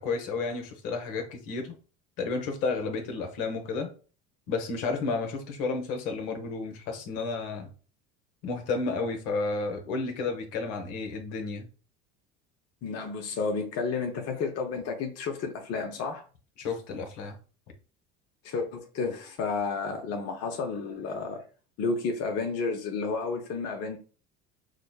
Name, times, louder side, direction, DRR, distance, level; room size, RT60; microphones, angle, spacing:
voice 1, 0.0-1.7 2.2-3.9 4.5-7.7 8.4-11.7 16.6-17.4, left 4 dB, 70° left, 1.0 m, -31 dB
voice 2, 12.8-16.2 18.4-21.4 21.8-24.0, left 4 dB, 50° left, 0.8 m, -31 dB
6.2 x 2.1 x 2.3 m
supercardioid pair, 95°, 31 cm